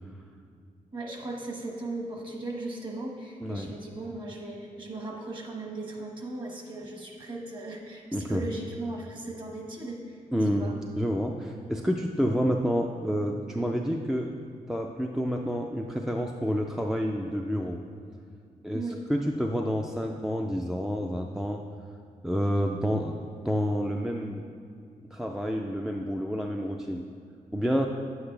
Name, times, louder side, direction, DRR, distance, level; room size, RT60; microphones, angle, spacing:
voice 1, 0.9-10.2 10.5-10.8 18.7-19.0, right 2 dB, 35° right, 0 dB, 1.2 m, -37 dB
voice 2, 10.3-14.4 14.7-17.8 18.6-21.6 22.2-23.2 23.4-24.4 25.1-27.1 27.5-27.9, equal, 5° right, 2 dB, 0.3 m, -29 dB
9.5 x 7.9 x 3.3 m, 2.3 s
wide cardioid pair, 155°, 14 cm